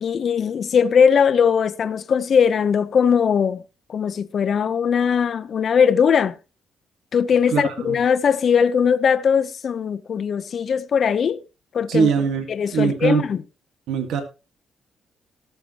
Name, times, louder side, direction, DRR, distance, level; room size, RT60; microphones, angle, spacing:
voice 1, 0.0-3.6 3.9-6.3 7.1-11.4 11.7-12.1 12.5-13.4, left 7 dB, 55° left, 0.9 m, -19 dB
voice 2, 7.5-8.0 11.9-12.5 12.7-13.2 13.9-14.2, right 7 dB, 80° right, 1.9 m, -21 dB
18.5 x 6.9 x 3.0 m
cardioid pair, 90°, 0 cm